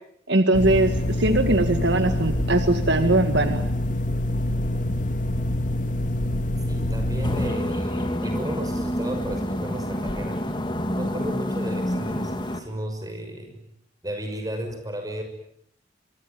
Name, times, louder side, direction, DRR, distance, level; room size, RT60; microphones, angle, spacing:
voice 1, 0.3-3.7, right 2 dB, 65° right, 8 dB, 1.9 m, -21 dB
sound 1, 0.5-7.5, left 1 dB, 40° left, 2.4 m, -25 dB
voice 2, 6.6-10.4 10.9-13.6 14.0-15.2, equal, 20° right, 6 dB, 6.2 m, -34 dB
sound 2, 7.2-12.6, equal, 25° left, 2.7 m, -28 dB
25.0 x 24.5 x 9.3 m, 0.71 s
head